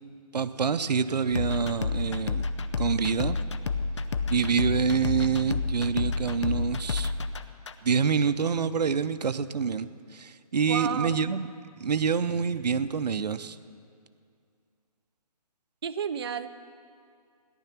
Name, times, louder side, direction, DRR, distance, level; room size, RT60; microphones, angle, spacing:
voice 1, 0.3-2.4 2.8-3.4 4.3-7.1 7.8-11.5 11.8-13.6, right 6 dB, 85° right, 13 dB, 0.7 m, -26 dB
sound 1, 1.3-7.7, left 4 dB, 45° left, 0.7 m, -30 dB
voice 2, 10.7-11.2 15.8-16.5, right 7 dB, 40° right, 9 dB, 0.4 m, -31 dB
17.5 x 11.0 x 5.9 m, 2.3 s
hypercardioid pair, 170°, 20 cm